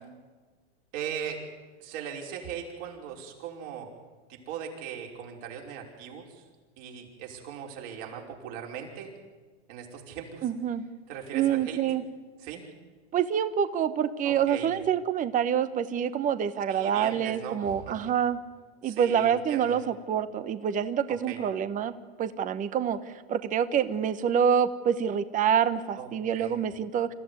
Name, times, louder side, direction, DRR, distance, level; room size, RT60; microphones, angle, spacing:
voice 1, 0.9-1.4 1.8-3.9 4.3-6.4 6.8-9.1 9.7-10.5 11.1-11.8 12.4-12.7 14.2-14.7 16.7-18.0 18.8-19.8 21.3-21.4 26.0-26.6, right 8 dB, 50° right, 0 dB, 5.4 m, -39 dB
voice 2, 10.4-10.8 11.3-12.0 13.1-18.4 18.8-19.8 20.1-21.9 22.2-27.1, right 8 dB, 25° right, 13 dB, 1.1 m, -26 dB
27.5 x 15.0 x 9.7 m, 1.4 s
hypercardioid pair, 120°, 33 cm